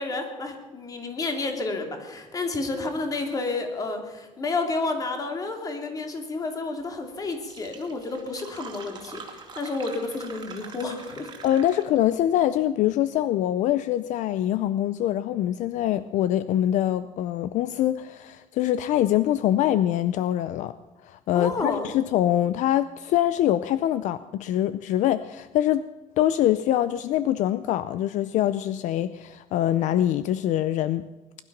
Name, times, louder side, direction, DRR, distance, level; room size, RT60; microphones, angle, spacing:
voice 1, 0.0-11.3 21.3-21.9, left 3 dB, 25° left, 4 dB, 2.5 m, -30 dB
Fill (with liquid), 7.0-7.1 7.3-12.1, right 5 dB, 30° right, 2.3 m, -43 dB
voice 2, 11.4-20.7 21.0-25.9 26.2-31.1, left 12 dB, 65° left, 14 dB, 0.5 m, -24 dB
20.0 x 12.0 x 5.9 m, 1.1 s
cardioid pair, 150°, 14 cm